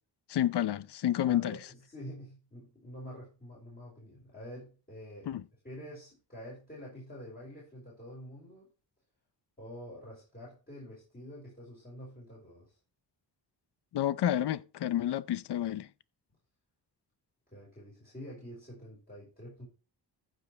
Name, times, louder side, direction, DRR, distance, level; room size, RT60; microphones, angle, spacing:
voice 1, 0.3-1.6 5.3-5.4 13.9-15.9, left 11 dB, 65° left, 0.6 m, -30 dB
voice 2, 1.2-5.3 5.6-8.7 9.6-12.7 17.5-19.7, equal, 20° left, 5.5 m, -47 dB
15.0 x 5.3 x 3.4 m
cardioid pair, 90°, 44 cm